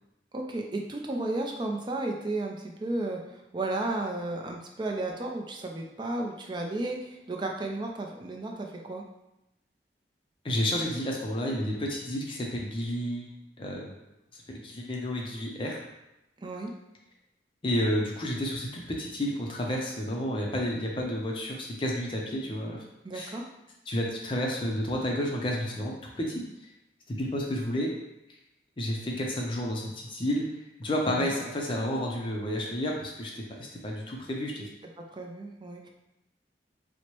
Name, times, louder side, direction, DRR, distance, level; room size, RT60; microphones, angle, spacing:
voice 1, 0.3-3.2 3.5-9.0 16.4-16.7 23.0-23.4 31.1-31.3 35.1-35.9, right 2 dB, 25° right, 1 dB, 0.4 m, -33 dB
voice 2, 10.4-13.9 14.3-15.8 17.6-22.8 23.1-23.4 23.9-26.4 27.1-27.9 28.8-30.5 30.8-34.7, equal, 30° left, -1 dB, 0.5 m, -31 dB
4.4 x 2.1 x 3.0 m, 0.91 s
head